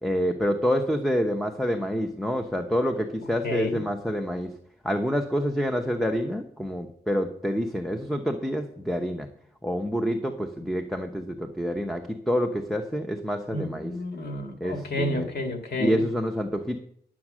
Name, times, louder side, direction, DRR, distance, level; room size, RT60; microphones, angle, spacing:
voice 1, 0.0-4.5 4.8-9.3 9.6-13.9 14.6-15.3 15.8-16.8, equal, ahead, 4 dB, 1.0 m, -27 dB
voice 2, 3.4-3.8 13.5-16.0, left 1 dB, 90° left, 3 dB, 1.9 m, -30 dB
11.5 x 7.4 x 6.3 m, 0.66 s
wide cardioid pair, 80°, 16 cm